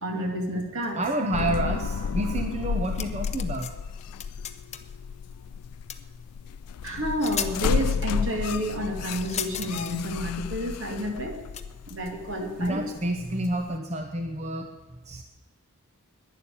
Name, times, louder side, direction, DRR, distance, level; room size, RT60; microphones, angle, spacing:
voice 1, 0.0-1.0 6.8-11.4 11.9-12.8, equal, 60° right, 3 dB, 2.4 m, -30 dB
voice 2, 0.9-3.7 12.6-14.7 15.0-15.2, right 1 dB, 30° right, 5 dB, 0.8 m, -29 dB
sound 1, 1.3-13.8, left 6 dB, 85° left, 0.4 m, -32 dB
sound 2, 2.8-3.7 4.0-4.9 5.9-6.0 6.9-7.0 7.2-7.5 9.1-10.0 11.5-11.6, left 9 dB, 30° left, 0.8 m, -35 dB
11.5 x 10.5 x 8.5 m, 1.2 s
head